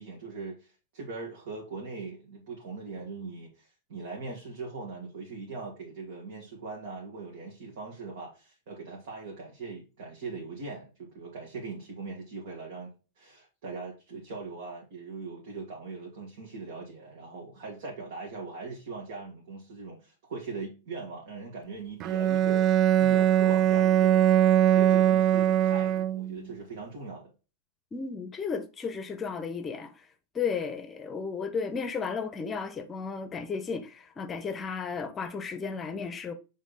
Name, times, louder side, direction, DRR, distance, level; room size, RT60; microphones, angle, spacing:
voice 1, 0.0-12.9 13.2-24.3 24.7-27.3, right 4 dB, 60° right, 1.9 m, -40 dB
Bowed string instrument, 22.0-26.4, right 11 dB, 35° right, 0.3 m, -22 dB
voice 2, 27.9-30.1 30.3-36.3, left 5 dB, 20° left, 0.8 m, -34 dB
6.3 x 3.7 x 4.0 m
figure-of-eight pair, 100°, 0 cm